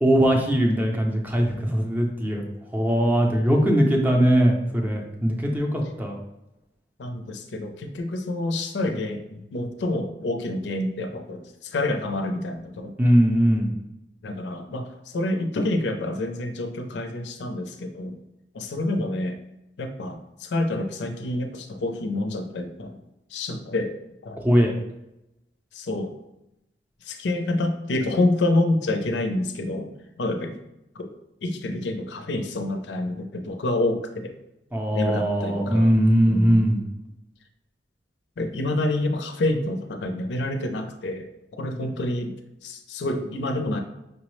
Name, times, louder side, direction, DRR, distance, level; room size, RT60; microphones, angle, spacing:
voice 1, 0.0-2.4 2.7-6.2 13.0-13.7 24.4-24.7 34.7-36.8, equal, 10° right, 1 dB, 0.5 m, -20 dB
voice 2, 7.0-13.0 14.2-18.2 18.5-19.4 19.8-23.0 23.3-23.9 24.2-24.4 25.7-26.1 27.0-30.6 31.0-31.1 31.4-34.3 34.9-36.0 36.3-36.8 38.4-41.3 41.6-42.4 42.6-43.8, left 2 dB, 80° left, 6 dB, 0.5 m, -28 dB
5.3 x 2.0 x 3.0 m, 0.88 s
head